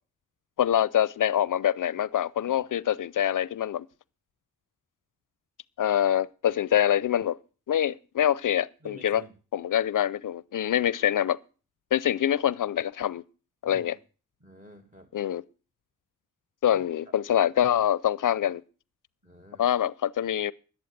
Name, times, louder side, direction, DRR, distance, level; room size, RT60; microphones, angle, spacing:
voice 1, 0.6-3.9 5.8-7.4 7.7-9.2 9.5-11.4 11.9-13.2 13.6-13.9 15.1-15.4 16.6-18.6 19.6-20.5, left 10 dB, 65° left, 0.5 m, -25 dB
voice 2, 8.8-9.3 13.7-13.9 14.4-15.1 16.7-16.8 19.2-19.6, equal, 20° right, 1.8 m, -49 dB
11.5 x 8.9 x 6.5 m
cardioid pair, 45°, 34 cm